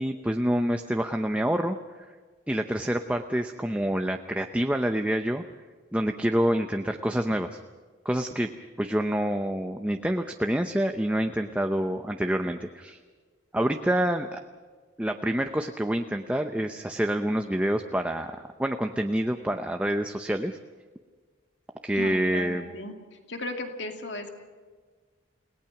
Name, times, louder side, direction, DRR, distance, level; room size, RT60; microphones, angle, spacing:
voice 1, 0.0-1.8 2.5-5.4 5.9-7.6 8.0-8.5 8.8-13.0 13.5-14.4 15.0-20.6 21.8-22.7, right 1 dB, 5° right, 5 dB, 0.7 m, -27 dB
voice 2, 22.0-22.9 23.3-24.3, left 2 dB, 65° left, 4 dB, 2.4 m, -35 dB
30.0 x 18.5 x 5.9 m, 1.5 s
head